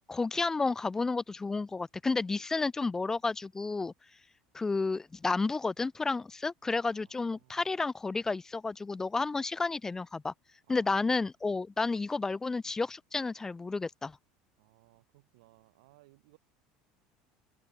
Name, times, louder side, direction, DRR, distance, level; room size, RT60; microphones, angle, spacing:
voice 1, 0.1-3.9 4.5-10.3 10.7-14.2, left 3 dB, 15° left, 1.0 m, -31 dB
voice 2, 6.9-7.8 10.7-11.2 14.6-16.4, right 22 dB, 80° right, 6.9 m, -63 dB
supercardioid pair, 100°, 3 cm